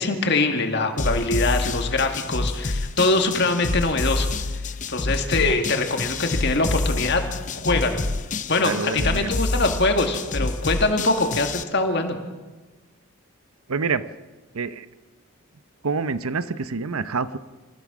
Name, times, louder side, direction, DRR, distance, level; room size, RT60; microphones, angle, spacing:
voice 1, 0.0-4.3 4.9-7.2 7.6-8.0 8.5-12.2, left 3 dB, 50° left, 5 dB, 2.2 m, -23 dB
sound 1, 1.0-11.6, left 2 dB, 35° left, 0.7 m, -27 dB
voice 2, 8.6-9.3 13.7-14.0 14.5-14.9 15.8-17.4, right 4 dB, 80° right, 14 dB, 0.8 m, -27 dB
27.5 x 15.5 x 6.2 m, 1.2 s
head